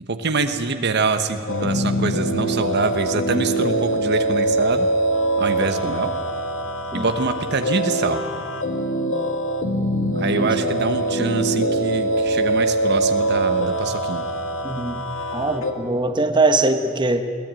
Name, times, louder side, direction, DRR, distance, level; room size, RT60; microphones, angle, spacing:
voice 1, 0.1-4.9 5.4-6.1 6.9-8.2 10.2-14.2, right 3 dB, 55° right, 8 dB, 1.1 m, -24 dB
sound 1, 1.5-15.7, right 1 dB, 70° left, 1.9 m, -23 dB
voice 2, 10.3-10.7 14.6-15.0 15.3-17.2, right 2 dB, 20° right, 7 dB, 1.2 m, -22 dB
21.0 x 17.5 x 9.0 m, 2.1 s
head